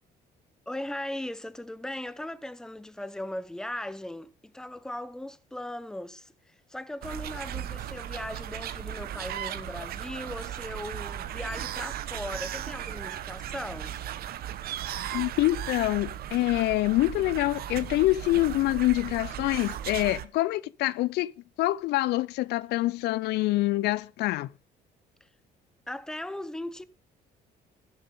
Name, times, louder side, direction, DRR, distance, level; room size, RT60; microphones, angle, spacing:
voice 1, 0.7-14.0 25.9-26.8, left 1 dB, 5° left, 0.8 m, -38 dB
sound 1, 7.0-20.2, right 11 dB, 65° right, 1.1 m, -36 dB
voice 2, 15.1-21.3 21.6-24.5, left 18 dB, 80° left, 0.5 m, -26 dB
14.0 x 7.4 x 5.4 m
cardioid pair, 110°, 17 cm